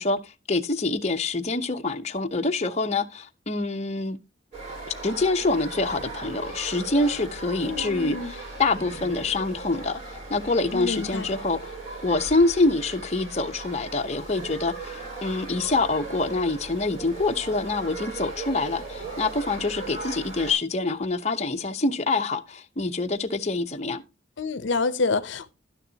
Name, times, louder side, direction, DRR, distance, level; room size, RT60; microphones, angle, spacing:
voice 1, 0.0-4.2 5.0-11.7 12.0-24.0, left 3 dB, 35° left, 0.8 m, -26 dB
sound 1, 4.5-20.5, right 3 dB, 30° right, 6.7 m, -38 dB
voice 2, 7.6-8.3 10.7-11.3 24.4-25.5, left 3 dB, 70° left, 0.6 m, -27 dB
12.0 x 9.8 x 2.8 m
head